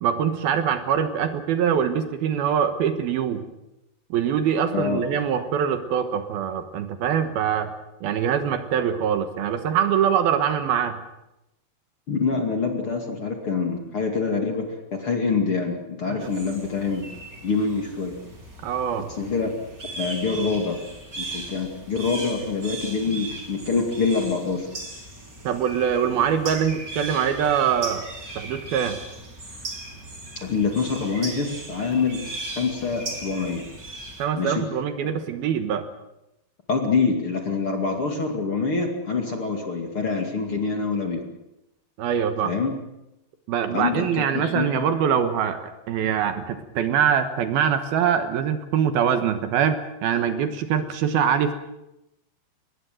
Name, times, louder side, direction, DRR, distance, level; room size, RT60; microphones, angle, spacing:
voice 1, 0.0-3.4 4.1-7.7 8.0-11.0 16.1-16.3 18.6-19.1 25.4-28.1 28.4-29.0 34.2-35.9 42.0-42.5 43.5-51.5, right 8 dB, 70° right, 9 dB, 2.9 m, -23 dB
voice 2, 4.7-5.0 12.1-14.6 14.9-17.0 17.4-18.1 19.2-19.5 20.0-20.8 21.2-24.7 30.4-32.2 32.6-33.6 34.4-34.6 36.7-41.2 42.4-42.7 43.7-44.7, left 4 dB, 40° left, 3 dB, 2.6 m, -25 dB
sound 1, 16.2-34.2, right 2 dB, 25° right, 4.5 m, -38 dB
24.0 x 20.0 x 7.8 m, 0.90 s
omnidirectional pair, 4.9 m